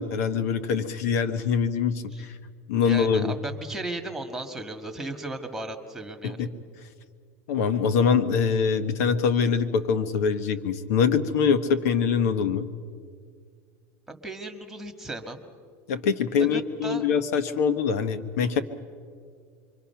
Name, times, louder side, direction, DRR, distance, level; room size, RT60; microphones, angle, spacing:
voice 1, 0.0-2.3 2.7-3.3 6.2-6.5 7.5-12.7 15.9-18.6, left 6 dB, 85° left, 12 dB, 1.1 m, -24 dB
voice 2, 2.8-6.5 14.1-15.4 16.3-17.1, right 2 dB, 5° right, 4 dB, 1.8 m, -36 dB
27.0 x 23.5 x 5.8 m, 2.1 s
supercardioid pair, 125°, 8 cm